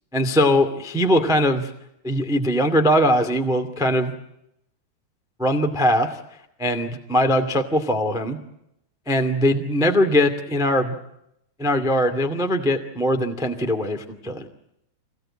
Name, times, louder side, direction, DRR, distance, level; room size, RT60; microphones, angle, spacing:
voice 1, 0.1-1.7 2.0-4.1 5.4-6.2 6.6-8.4 9.1-11.0 11.6-14.5, equal, 5° right, 7 dB, 0.3 m, -21 dB
27.0 x 19.5 x 8.8 m, 0.81 s
omnidirectional pair, 4.9 m